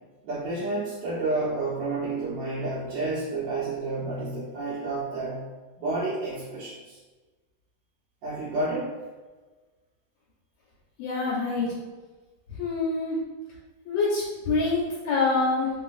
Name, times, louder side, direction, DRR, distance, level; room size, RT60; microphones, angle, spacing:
voice 1, 0.2-5.4 5.8-7.0 8.2-8.9, right 2 dB, 75° right, -8 dB, 1.3 m, -30 dB
voice 2, 11.0-11.8 12.5-13.2 13.9-15.7, left 3 dB, 80° left, -5 dB, 1.3 m, -26 dB
3.1 x 2.4 x 2.4 m, 1.3 s
omnidirectional pair, 2.0 m